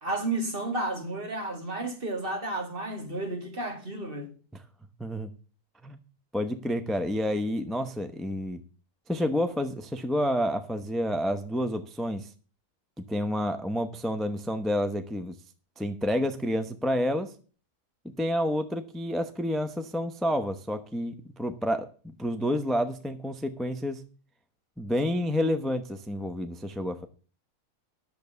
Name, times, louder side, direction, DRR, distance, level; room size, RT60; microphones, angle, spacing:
voice 1, 0.0-4.3, right 2 dB, 35° right, 2.2 m, -32 dB
voice 2, 5.0-5.3 5.8-6.0 6.3-8.6 9.1-12.3 13.1-15.4 15.8-17.3 18.0-24.0 24.8-27.1, equal, ahead, 0.5 m, -29 dB
11.0 x 7.0 x 6.8 m
omnidirectional pair, 1.6 m